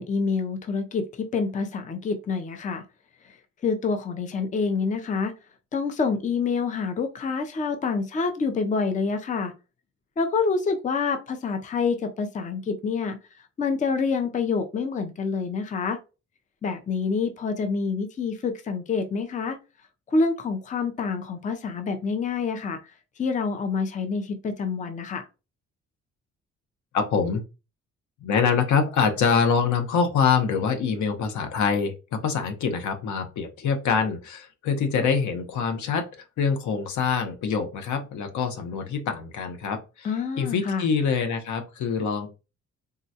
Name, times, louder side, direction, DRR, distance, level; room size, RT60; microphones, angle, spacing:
voice 1, 0.0-2.8 3.2-3.3 3.6-5.3 5.7-9.5 10.2-13.2 13.6-16.0 16.6-19.6 20.1-22.8 23.2-25.3 40.0-40.9, left 4 dB, 25° left, 0.5 m, -27 dB
voice 2, 26.9-27.4 28.2-36.0 36.4-40.1 40.4-42.4, left 6 dB, 75° left, 0.8 m, -25 dB
3.7 x 2.1 x 2.7 m
cardioid pair, 90°, 30 cm